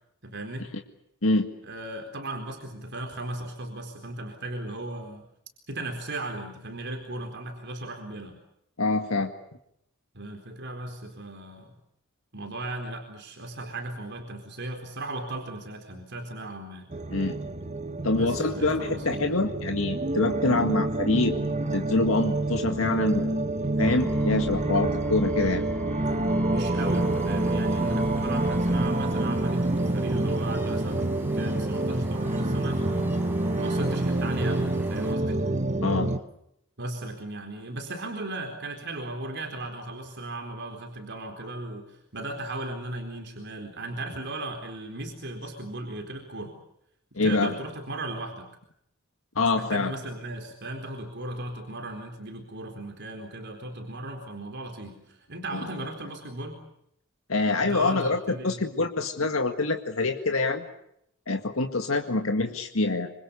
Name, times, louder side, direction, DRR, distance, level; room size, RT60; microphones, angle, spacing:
voice 1, 0.2-0.7 1.6-5.3 5.7-8.4 10.1-11.8 12.3-16.9 18.1-19.2 26.4-33.2 33.6-35.5 36.8-46.6 47.2-48.5 49.5-56.6 57.6-58.7, right 2 dB, 55° right, 3 dB, 4.2 m, -36 dB
voice 2, 8.8-9.3 17.1-17.4 18.0-21.4 21.7-23.4 23.8-25.6 35.8-36.1 47.2-47.5 49.4-49.9 57.3-60.7 61.3-63.1, left 3 dB, 70° left, 5 dB, 2.0 m, -25 dB
sound 1, 16.9-36.2, right 2 dB, 35° right, 1.4 m, -27 dB
sound 2, 23.8-28.9, equal, 10° left, 5.8 m, -36 dB
sound 3, 26.8-35.1, right 1 dB, 10° right, 5.7 m, -44 dB
26.5 x 26.0 x 6.9 m, 0.75 s
head